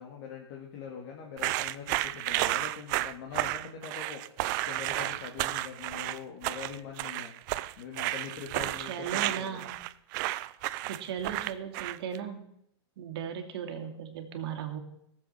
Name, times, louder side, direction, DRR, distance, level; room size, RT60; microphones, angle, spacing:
voice 1, 0.0-4.2 4.6-7.3 7.8-9.7, left 7 dB, 50° left, 0 dB, 2.1 m, -43 dB
sound 1, 1.4-12.2, right 18 dB, 45° right, 0.5 m, -32 dB
voice 2, 8.9-9.8 10.8-12.5 13.0-14.8, right 8 dB, 60° right, 5 dB, 2.3 m, -37 dB
18.0 x 7.6 x 5.7 m, 0.74 s
hypercardioid pair, 135°, 15 cm